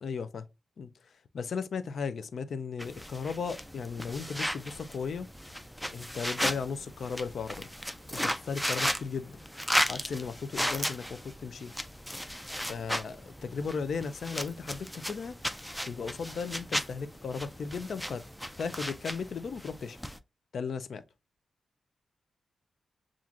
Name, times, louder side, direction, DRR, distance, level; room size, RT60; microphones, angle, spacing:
voice 1, 0.0-0.4 0.8-5.3 5.9-7.7 8.1-9.4 9.9-11.7 12.7-15.3 15.8-18.2 18.6-20.0 20.5-21.0, left 5 dB, 65° left, 0.5 m, -36 dB
sound 1, 2.8-20.2, equal, 5° left, 0.3 m, -35 dB
7.2 x 2.5 x 2.4 m
wide cardioid pair, 145°, 0 cm